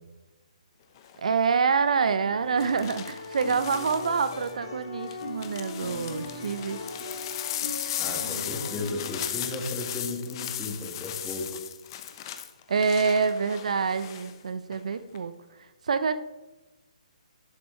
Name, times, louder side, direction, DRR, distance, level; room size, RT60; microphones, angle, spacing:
sound 1, 1.0-1.3 2.6-4.5 5.1-14.3 14.7-15.2, left 11 dB, 35° left, 0.8 m, -37 dB
voice 1, 1.2-6.8 12.7-15.3 15.8-16.1, right 5 dB, 65° right, 12 dB, 0.6 m, -26 dB
sound 2, 1.3-9.2, left 3 dB, 55° left, 3.2 m, -40 dB
voice 2, 8.0-11.6, left 2 dB, 5° left, -1 dB, 1.6 m, -35 dB
11.0 x 6.8 x 3.2 m, 1.1 s
hypercardioid pair, 145°, 4 cm